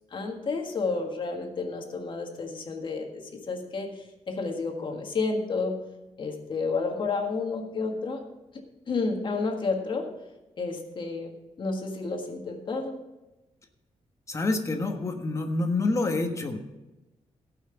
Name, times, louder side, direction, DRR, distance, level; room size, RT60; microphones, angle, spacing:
voice 1, 0.1-5.8 6.2-8.2 8.5-10.1 10.6-13.0, left 4 dB, 45° left, 3 dB, 1.7 m, -31 dB
voice 2, 14.3-16.6, left 2 dB, 25° left, 4 dB, 1.3 m, -27 dB
17.0 x 5.8 x 5.8 m, 1.0 s
wide cardioid pair, 140°, 12 cm